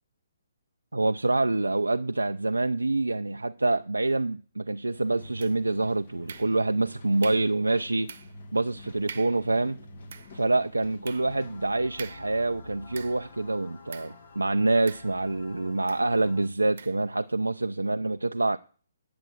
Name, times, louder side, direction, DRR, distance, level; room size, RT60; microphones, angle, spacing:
voice 1, 0.9-8.1 8.5-9.8 10.3-18.6, right 2 dB, 90° right, 0.4 m, -26 dB
sound 1, 4.9-11.8, left 2 dB, 50° left, 2.0 m, -48 dB
sound 2, 5.4-5.8 6.3-6.8 7.2-7.6 8.1-8.4 8.7-8.8 9.1-9.5 9.9-13.4 13.9-14.2 14.9-15.5 15.9-16.1 16.8-17.1, right 6 dB, 55° right, 0.9 m, -45 dB
sound 3, 11.1-16.5, left 4 dB, 70° left, 2.0 m, -49 dB
9.4 x 6.8 x 7.6 m
figure-of-eight pair, 135°, 0 cm